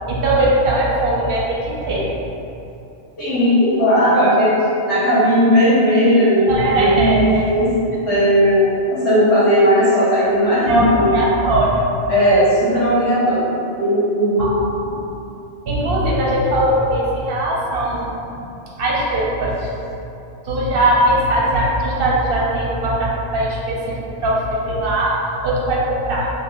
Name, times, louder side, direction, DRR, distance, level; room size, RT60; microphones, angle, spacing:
voice 1, 0.1-2.1 6.5-7.5 10.7-11.9 14.4-14.7 15.7-18.1 18.8-19.7 20.4-26.3, right 1 dB, 65° right, -5 dB, 0.8 m, -19 dB
voice 2, 3.2-4.5 4.8-7.7 8.1-11.2 12.1-13.5 13.8-14.5 19.1-19.2, equal, 80° left, -14 dB, 1.3 m, -16 dB
2.9 x 2.5 x 3.6 m, 2.8 s
omnidirectional pair, 1.1 m